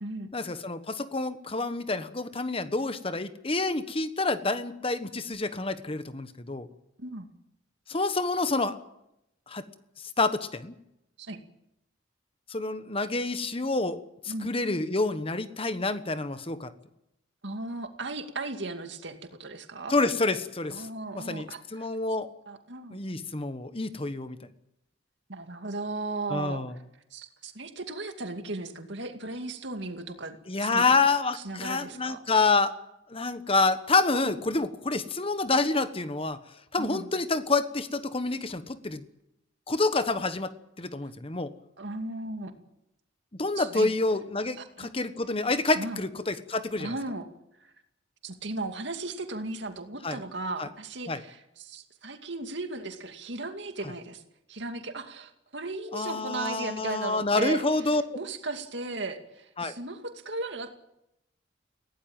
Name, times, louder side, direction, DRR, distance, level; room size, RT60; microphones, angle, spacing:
voice 1, 0.3-6.7 7.9-8.8 9.5-9.7 10.2-10.7 12.5-14.0 14.2-16.7 19.9-20.9 21.1-22.3 22.9-24.4 26.3-26.7 30.5-32.7 33.1-36.4 36.7-39.0 39.7-41.5 43.4-46.9 50.0-50.2 50.6-50.7 51.1-51.2 55.9-58.0 59.6-59.7, left 3 dB, 30° left, 12 dB, 1.3 m, -28 dB
voice 2, 17.4-19.9 20.7-21.9 22.5-23.0 25.3-26.6 27.1-31.0 31.3-32.2 36.8-37.1 41.8-42.5 43.6-43.9 44.6-44.9 45.8-46.0 46.8-47.3 47.6-47.7 48.2-54.2 54.5-57.6 58.1-60.7, right 2 dB, 65° right, 6 dB, 2.4 m, -36 dB
21.5 x 17.0 x 9.0 m, 0.83 s
head